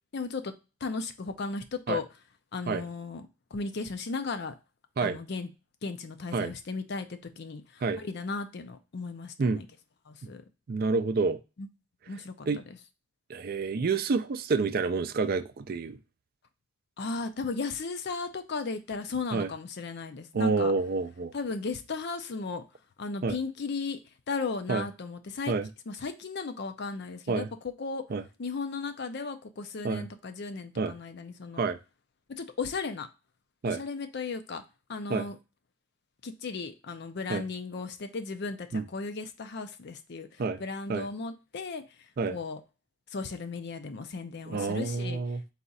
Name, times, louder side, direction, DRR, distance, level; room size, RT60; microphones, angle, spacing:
voice 1, 0.1-0.5 0.8-2.1 2.5-4.5 5.0-5.5 5.8-7.1 7.4-9.7 10.1-10.4 11.6-11.7 12.1-12.8 17.0-20.7 21.3-22.6 23.0-24.0 24.3-25.5 25.9-28.0 28.4-31.6 32.3-33.1 33.6-34.6 34.9-35.4 36.2-42.6 43.1-45.2, left 4 dB, 55° left, 9 dB, 0.5 m, -36 dB
voice 2, 10.7-11.4 12.5-12.6 13.3-16.0 19.3-19.5 20.3-21.3 23.2-23.4 24.7-24.8 25.5-25.7 27.3-27.5 28.1-28.2 29.8-30.1 30.8-30.9 31.6-31.8 33.6-33.8 35.1-35.3 37.3-37.4 38.7-38.8 40.4-40.6 40.9-41.1 42.2-42.4 44.5-45.4, right 4 dB, 50° right, 9 dB, 0.4 m, -28 dB
4.1 x 2.4 x 3.9 m, 0.29 s
head